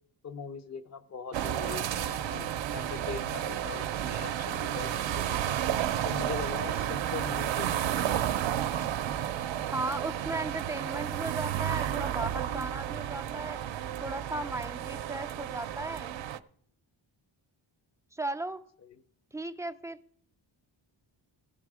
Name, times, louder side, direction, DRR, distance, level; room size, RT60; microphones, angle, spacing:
voice 1, 0.2-5.6 6.0-8.2, left 5 dB, 35° left, 12 dB, 0.6 m, -41 dB
sound 1, 1.3-16.4, right 10 dB, 70° right, 0.6 m, -32 dB
voice 2, 9.7-13.6 14.0-16.1 18.1-18.6 19.3-20.0, right 2 dB, 5° right, 7 dB, 0.4 m, -36 dB
16.5 x 5.6 x 4.8 m, 0.64 s
wide cardioid pair, 145°, 47 cm